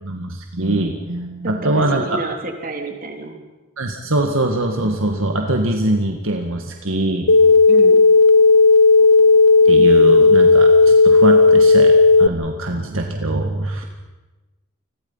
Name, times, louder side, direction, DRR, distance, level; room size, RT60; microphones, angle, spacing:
voice 1, 0.0-2.3 3.8-7.3 9.7-13.8, right 1 dB, 70° right, 3 dB, 1.9 m, -22 dB
voice 2, 1.4-3.4 7.7-8.0, right 2 dB, 45° right, 4 dB, 3.4 m, -30 dB
sound 1, 7.3-12.3, left 3 dB, 80° left, 0.9 m, -11 dB
29.0 x 21.5 x 5.7 m, 1.2 s
head